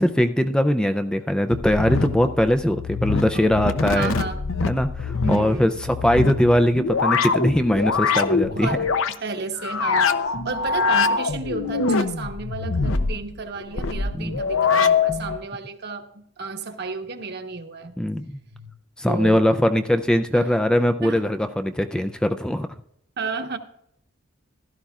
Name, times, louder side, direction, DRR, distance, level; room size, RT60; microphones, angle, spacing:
voice 1, 0.0-4.2 4.7-8.8 14.2-14.4 18.0-18.3 19.0-22.7, equal, 5° left, 8 dB, 0.4 m, -21 dB
sound 1, 1.5-9.2 9.6-15.4, left 4 dB, 80° left, 0.7 m, -24 dB
voice 2, 3.3-4.4 5.2-5.7 8.4-8.8 9.1-17.9 18.3-18.7 19.1-19.6 20.3-20.6 21.0-21.3 23.2-23.6, right 3 dB, 55° right, 5 dB, 1.1 m, -33 dB
15.5 x 12.5 x 2.4 m, 0.75 s
head